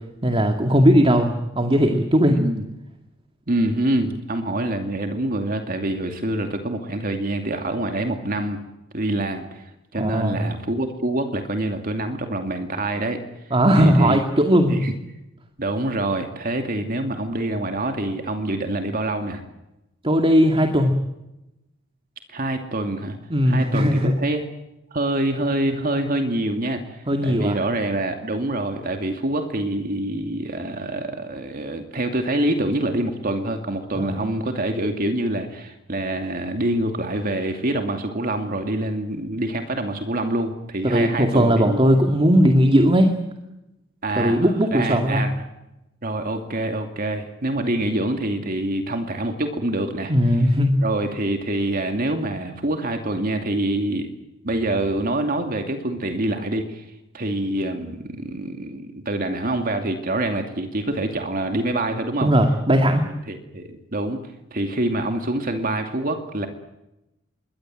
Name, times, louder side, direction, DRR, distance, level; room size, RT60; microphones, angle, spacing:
voice 1, 0.2-2.3 10.0-10.4 13.5-14.8 20.0-20.9 23.3-24.1 27.1-27.6 33.9-34.2 40.8-43.1 44.2-45.2 50.1-50.7 62.2-63.0, equal, 30° right, 4 dB, 2.3 m, -18 dB
voice 2, 2.3-2.6 3.5-8.6 8.9-13.2 13.8-14.2 14.7-14.9 15.6-19.4 22.3-23.2 23.5-24.4 24.9-41.8 44.0-45.4 46.0-50.1 50.8-54.1 54.4-56.9 57.1-62.3 63.3-64.2 64.5-66.5, right 1 dB, 45° right, 5 dB, 2.6 m, -26 dB
27.0 x 23.0 x 7.7 m, 0.91 s
head